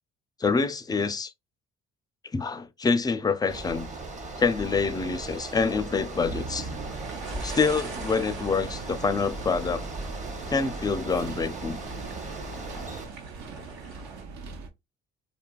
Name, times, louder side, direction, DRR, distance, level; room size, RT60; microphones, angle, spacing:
voice 1, 0.4-1.3 2.3-3.9 4.4-6.7 7.4-9.9 10.5-11.8, left 4 dB, 15° left, 0.3 m, -26 dB
Bicycle, 3.5-13.1, right 2 dB, 25° right, 0.8 m, -38 dB
sound 1, 5.1-14.2, right 4 dB, 85° right, 1.3 m, -44 dB
sound 2, 6.3-14.7, right 4 dB, 65° right, 0.7 m, -41 dB
2.8 x 2.4 x 2.3 m
supercardioid pair, 70°, 29 cm